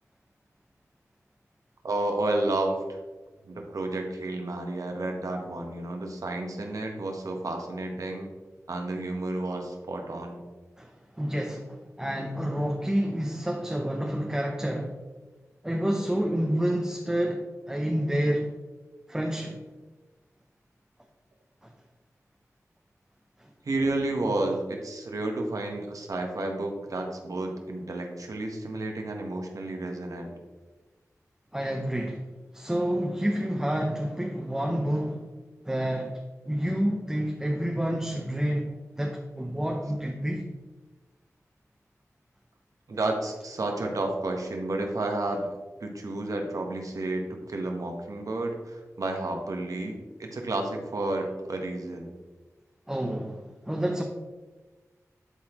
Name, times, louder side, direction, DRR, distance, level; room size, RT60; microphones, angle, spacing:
voice 1, 1.8-3.0 3.5-8.3 8.7-10.4 23.6-30.4 42.9-45.5 45.8-52.1, right 2 dB, 75° right, 2 dB, 1.1 m, -31 dB
voice 2, 10.8-15.0 15.6-18.5 19.1-19.6 21.6-21.7 23.4-23.5 31.5-32.2 32.5-35.3 35.7-36.2 36.4-38.7 39.0-40.5 52.9-54.0, equal, 10° right, 2 dB, 0.6 m, -29 dB
11.0 x 4.0 x 3.0 m, 1.3 s
wide cardioid pair, 75°, 6 cm